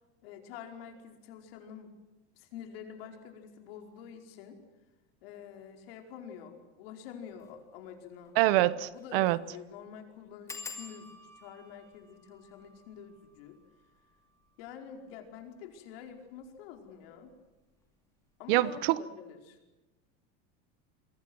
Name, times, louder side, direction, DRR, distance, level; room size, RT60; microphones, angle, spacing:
voice 1, 0.2-1.9 2.4-4.6 5.2-8.3 8.9-11.1 11.4-13.6 14.6-17.3 18.4-19.6, left 8 dB, 65° left, 4 dB, 4.9 m, -47 dB
sound 1, 7.3-7.5 7.9-8.0 8.2-8.3 8.9-9.2 9.4-9.5 10.5-15.7 16.4-16.9 17.3-17.6 17.9-18.0, left 4 dB, 10° left, 2.4 m, -50 dB
voice 2, 8.4-9.4 18.5-19.0, right 17 dB, 60° right, 17 dB, 1.1 m, -25 dB
28.5 x 23.5 x 6.2 m, 1.1 s
supercardioid pair, 170°, 32 cm